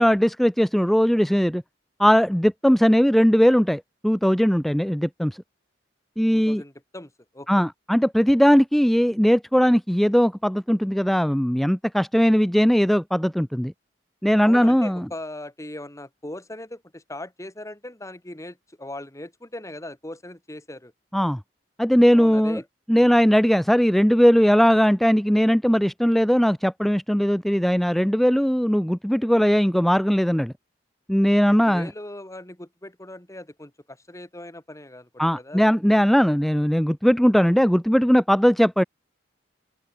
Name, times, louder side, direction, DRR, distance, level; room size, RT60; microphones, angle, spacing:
voice 1, 0.0-1.6 2.0-5.4 6.2-6.6 7.5-13.7 14.2-15.1 21.1-21.4 21.8-22.6 22.9-30.5 31.1-31.9 35.2-38.8, equal, ahead, 0.3 m, -19 dB
voice 2, 6.3-7.6 14.4-20.9 22.1-22.6 23.0-23.1 31.5-35.6, left 1 dB, 15° left, 2.5 m, -39 dB
open air
head